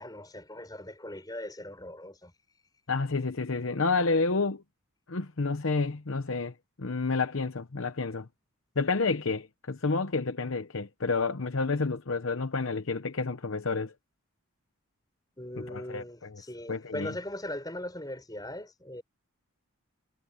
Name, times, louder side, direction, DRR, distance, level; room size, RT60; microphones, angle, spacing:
voice 1, 0.0-2.3 15.4-19.0, left 1 dB, 15° left, 6.6 m, -39 dB
voice 2, 2.9-4.6 5.1-8.3 8.8-13.9 15.7-16.4 16.7-17.1, left 4 dB, 65° left, 0.9 m, -30 dB
head